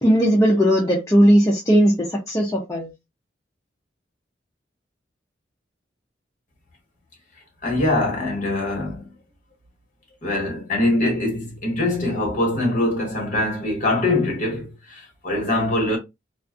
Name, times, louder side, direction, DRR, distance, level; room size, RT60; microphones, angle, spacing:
voice 1, 0.0-2.9, equal, 15° left, 0.5 m, -17 dB
voice 2, 7.6-9.1 10.2-16.0, left 2 dB, 45° left, 1.2 m, -23 dB
2.4 x 2.4 x 2.4 m
head